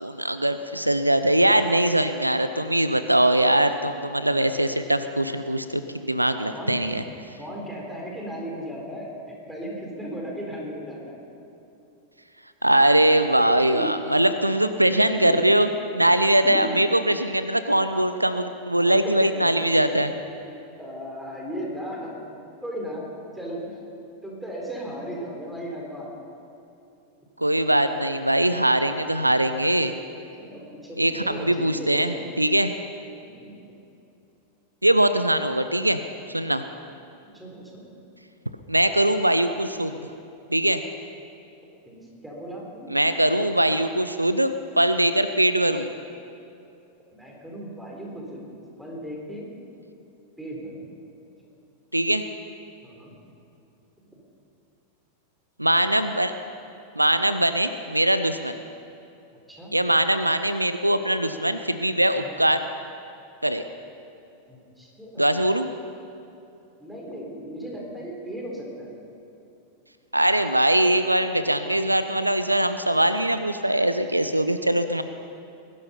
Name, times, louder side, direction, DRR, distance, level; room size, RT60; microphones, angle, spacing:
voice 1, 0.0-7.0 12.6-15.7 15.9-20.1 27.4-29.9 31.0-32.7 34.8-36.0 36.3-36.6 38.7-40.0 40.5-40.8 42.9-45.9 51.9-52.2 55.6-56.3 57.0-58.6 59.7-62.6 63.4-63.6 65.2-65.7 70.1-75.0, right 1 dB, 85° right, 10 dB, 0.6 m, -21 dB
voice 2, 6.5-6.9 7.4-11.2 13.4-13.9 14.9-15.4 16.1-16.7 19.0-19.6 20.4-22.2 22.6-23.1 23.3-23.8 24.2-26.1 30.4-32.2 33.2-33.5 37.2-37.8 41.9-42.9 47.1-48.4 48.8-49.5 50.4-50.9 52.8-53.1 54.1-54.2 59.5-59.7 62.1-62.3 64.5-65.3 66.8-68.9, equal, 5° right, -2 dB, 4.1 m, -36 dB
21.0 x 11.5 x 5.7 m, 2.7 s
figure-of-eight pair, 90°, 0 cm